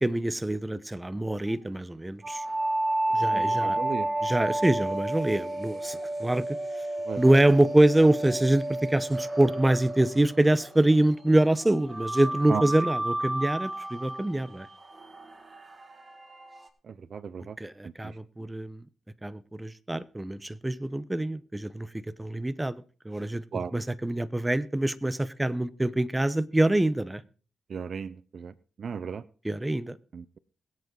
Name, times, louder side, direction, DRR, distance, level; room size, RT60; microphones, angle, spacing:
voice 1, 0.0-2.4 3.1-3.8 4.2-6.6 7.2-14.7 17.6-18.8 19.2-21.9 22.2-23.4 23.7-27.2 29.4-30.0, right 1 dB, 10° right, 15 dB, 0.8 m, -25 dB
Speech, 1.4-1.8 2.5-2.6 2.9-3.8 4.2-4.8 5.3-7.6 7.9-8.8 9.3-10.2 10.6-11.3 11.6-12.8, left 5 dB, 80° left, 3.5 m, -52 dB
sound 1, 2.2-11.0 11.9-16.7, right 1 dB, 30° right, 1.9 m, -31 dB
voice 2, 3.3-4.1 7.1-7.2 12.5-12.6 16.9-17.6 18.0-18.1 23.5-23.7 27.7-28.5 28.8-29.2 30.1-30.4, right 6 dB, 55° right, 17 dB, 0.6 m, -35 dB
21.5 x 8.1 x 3.9 m, 0.39 s
cardioid pair, 90°, 0 cm